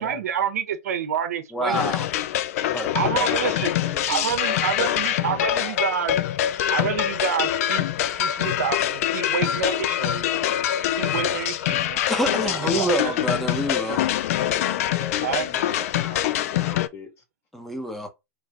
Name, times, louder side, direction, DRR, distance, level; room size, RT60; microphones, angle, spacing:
voice 1, 0.0-1.9 2.9-3.8 4.1-6.1 6.7-7.9 8.2-10.3 11.0-12.0 12.3-13.5 15.2-15.5, right 8 dB, 80° right, 0.9 m, -28 dB
voice 2, 1.5-2.1 2.7-3.4 12.1-14.1 17.5-18.1, right 1 dB, 5° left, 1.1 m, -27 dB
sound 1, 1.7-16.9, left 12 dB, 70° left, 0.4 m, -24 dB
voice 3, 2.6-6.2 14.3-17.1, left 4 dB, 30° left, 2.1 m, -40 dB
3.3 x 3.2 x 3.8 m
hypercardioid pair, 115°, 8 cm